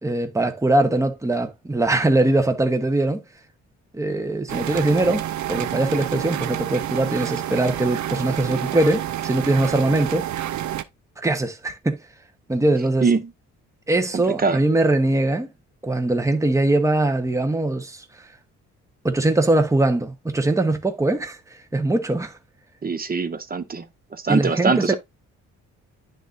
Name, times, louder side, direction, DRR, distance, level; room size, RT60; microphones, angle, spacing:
voice 1, 0.0-3.2 3.9-10.3 11.2-12.0 12.5-13.1 13.9-15.5 15.8-18.0 19.0-21.4 21.7-22.4 24.3-24.9, right 2 dB, 10° right, 1.2 m, -21 dB
sound 1, 4.5-10.8, right 12 dB, 70° right, 0.7 m, -28 dB
voice 2, 14.1-14.6 22.8-23.8 24.1-24.9, right 4 dB, 30° right, 1.2 m, -23 dB
11.0 x 3.9 x 2.6 m
cardioid pair, 90°, 30 cm